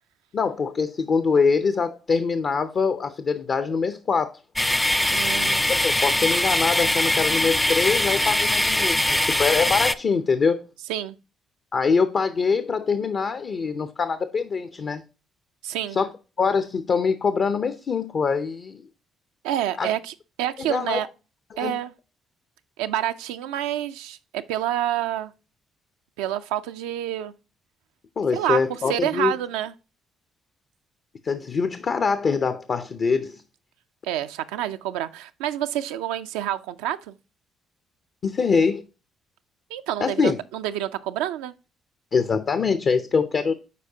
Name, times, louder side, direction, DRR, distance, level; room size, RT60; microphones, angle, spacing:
voice 1, 0.3-4.3 5.7-10.7 11.7-15.0 15.9-16.1 16.4-18.9 19.8-19.9 20.6-21.0 21.5-21.8 28.2-29.3 31.2-33.4 38.2-38.8 40.0-40.4 42.1-43.5, left 5 dB, 50° left, 0.6 m, -24 dB
sound 1, 4.5-9.9, left 1 dB, 10° left, 0.4 m, -22 dB
voice 2, 5.1-5.6 10.9-11.2 15.6-16.0 19.4-21.1 21.6-21.9 22.8-25.3 26.2-27.3 28.3-29.7 34.0-37.2 39.7-41.5, right 12 dB, 80° right, 0.4 m, -28 dB
8.3 x 4.7 x 2.7 m
hypercardioid pair, 50°, 0 cm